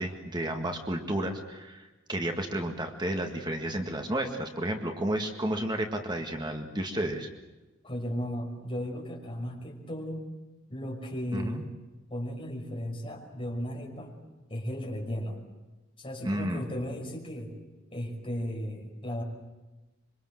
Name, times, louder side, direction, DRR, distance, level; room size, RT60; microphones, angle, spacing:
voice 1, 0.0-7.3 11.3-11.6 16.2-16.6, right 1 dB, 20° right, 4 dB, 1.9 m, -32 dB
voice 2, 7.8-10.3 10.7-11.6 12.1-14.1 14.5-15.4 16.0-17.5 17.9-19.2, equal, 25° left, 0 dB, 5.7 m, -35 dB
26.5 x 24.5 x 7.8 m, 1.1 s
head